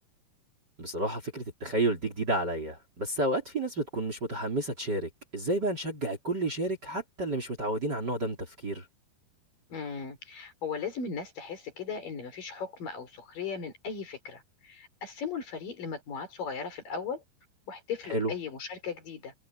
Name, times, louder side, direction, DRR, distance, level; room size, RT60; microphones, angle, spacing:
voice 1, 0.8-8.8 18.1-18.3, right 1 dB, 25° right, 3.5 m, -31 dB
voice 2, 9.7-17.2 17.7-19.3, left 5 dB, 55° left, 5.9 m, -37 dB
omnidirectional pair, 4.9 m